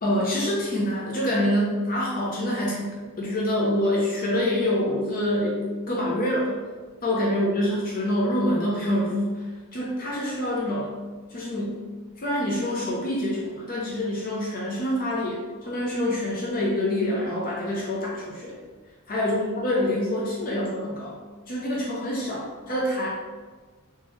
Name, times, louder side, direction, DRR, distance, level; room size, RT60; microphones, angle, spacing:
voice 1, 0.0-2.9 3.2-5.6 5.9-6.5 7.0-10.9 11.3-11.8 12.2-18.5 19.1-21.2 21.5-23.1, left 1 dB, 40° left, -5 dB, 0.7 m, -26 dB
3.4 x 2.9 x 3.0 m, 1.4 s
head